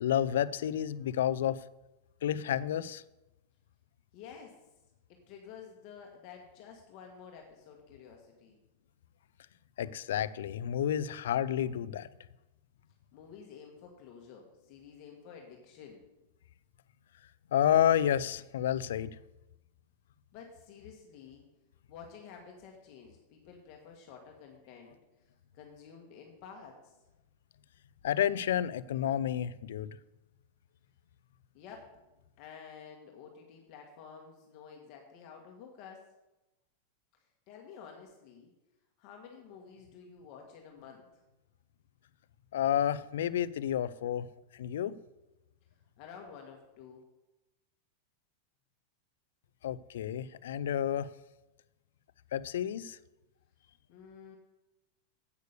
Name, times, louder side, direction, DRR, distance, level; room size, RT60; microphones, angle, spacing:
voice 1, 0.0-1.6 2.2-3.0 9.8-12.1 17.5-19.1 28.0-30.0 42.5-44.3 44.5-45.0 49.6-51.1 52.3-53.0, left 10 dB, 85° left, 0.4 m, -30 dB
voice 2, 4.1-4.6 5.1-8.6 13.1-16.0 20.3-21.4 21.9-26.9 31.5-31.9 32.4-36.1 37.5-38.5 39.0-41.1 46.0-47.0 53.9-54.4, left 6 dB, 45° left, 1.5 m, -51 dB
8.2 x 6.6 x 6.6 m
supercardioid pair, 145°, 0 cm